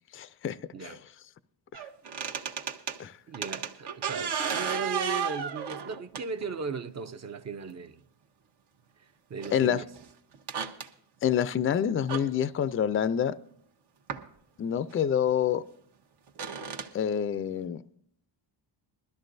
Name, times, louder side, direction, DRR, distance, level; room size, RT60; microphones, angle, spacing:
voice 1, 0.1-1.0 1.7-1.8 3.0-3.2 9.5-9.8 11.2-13.3 14.6-15.6 16.9-17.8, left 9 dB, 30° left, 0.4 m, -27 dB
voice 2, 0.7-1.0 3.3-8.0 9.0-9.9, right 5 dB, 35° right, 0.7 m, -37 dB
sound 1, 1.7-3.0 3.3-6.6 7.7-7.8 9.4-9.6 9.9-10.1 10.3-10.9 12.1-12.2 14.1-14.2 14.9-15.0 16.3-16.9, right 7 dB, 60° right, 1.1 m, -33 dB
21.5 x 13.0 x 2.6 m
cardioid pair, 125°, 44 cm